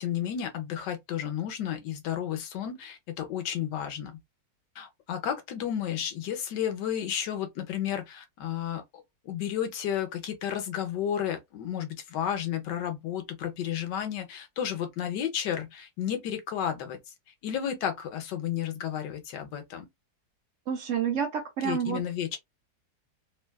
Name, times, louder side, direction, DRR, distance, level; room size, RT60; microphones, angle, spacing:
voice 1, 0.0-4.2 4.8-8.8 9.2-17.0 17.4-19.9 21.6-22.4, left 9 dB, 80° left, 1.3 m, -32 dB
voice 2, 20.7-22.0, right 7 dB, 85° right, 0.6 m, -29 dB
3.3 x 2.2 x 2.2 m
omnidirectional pair, 1.9 m